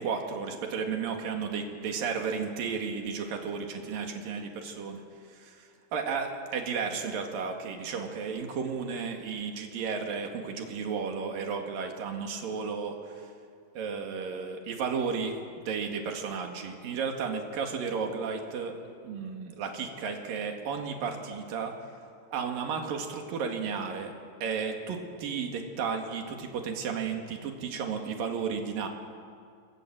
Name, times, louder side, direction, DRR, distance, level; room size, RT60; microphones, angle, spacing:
voice 1, 0.0-5.0 5.4-13.3 13.8-18.8 19.0-21.7 22.3-24.1 24.4-28.9, right 5 dB, 60° right, 3 dB, 3.6 m, -33 dB
27.0 x 22.0 x 7.7 m, 2.3 s
omnidirectional pair, 4.7 m